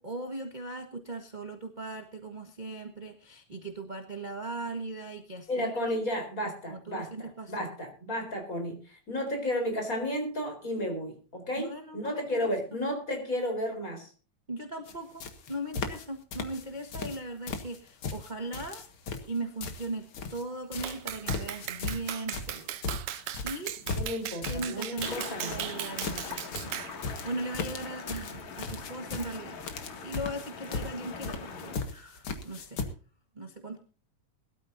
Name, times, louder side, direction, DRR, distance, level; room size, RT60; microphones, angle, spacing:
voice 1, 0.0-6.0 6.4-7.7 11.6-12.8 14.5-15.2 15.5-18.9 19.3-20.0 20.3-22.8 23.1-23.7 24.5-29.6 30.0-32.9 33.3-33.8, right 2 dB, 30° right, 4 dB, 0.8 m, -39 dB
voice 2, 5.5-14.1 23.9-25.7, left 1 dB, 25° left, 4 dB, 4.5 m, -33 dB
sound 1, 14.9-15.0 15.2-16.1 16.3-17.2 17.5-20.4 20.7-32.8, left 4 dB, 50° left, 2.1 m, -37 dB
Clapping, 20.8-27.0, right 12 dB, 70° right, 1.4 m, -37 dB
sound 2, 25.0-31.8, left 5 dB, 70° left, 3.6 m, -42 dB
21.5 x 13.0 x 2.7 m, 0.35 s
omnidirectional pair, 3.3 m